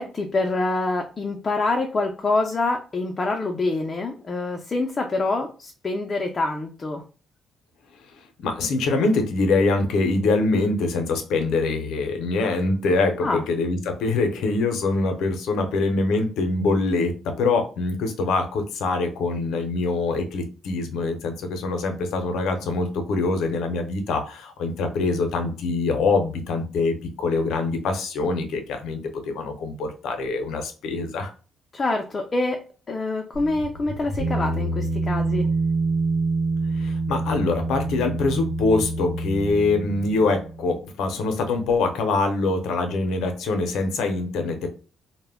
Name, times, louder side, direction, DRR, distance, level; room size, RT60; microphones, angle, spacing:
voice 1, 0.0-7.0 13.2-13.4 31.7-32.6 32.9-35.5, left 2 dB, 35° left, 2 dB, 0.4 m, -26 dB
voice 2, 8.4-31.3 36.7-44.7, left 3 dB, 80° left, 5 dB, 0.6 m, -24 dB
sound 1, 33.3-40.8, right 3 dB, 90° right, 0.8 m, -27 dB
2.1 x 2.1 x 3.4 m, 0.35 s
cardioid pair, 90°, 0 cm